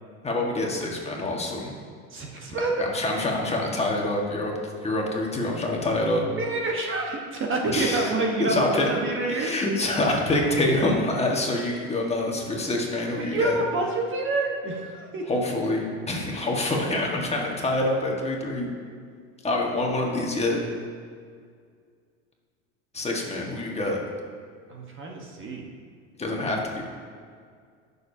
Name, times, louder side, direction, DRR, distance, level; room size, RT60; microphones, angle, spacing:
voice 1, 0.2-1.7 2.8-4.6 4.8-6.2 7.7-8.1 8.4-8.9 9.3-13.6 15.3-18.7 19.4-20.6 22.9-24.0 26.2-26.8, left 2 dB, 15° left, -1 dB, 1.6 m, -26 dB
voice 2, 2.1-2.7 6.4-9.5 13.2-15.2 24.7-25.7, right 3 dB, 35° right, 1 dB, 1.3 m, -27 dB
18.5 x 6.9 x 2.8 m, 2.1 s
supercardioid pair, 115°, 37 cm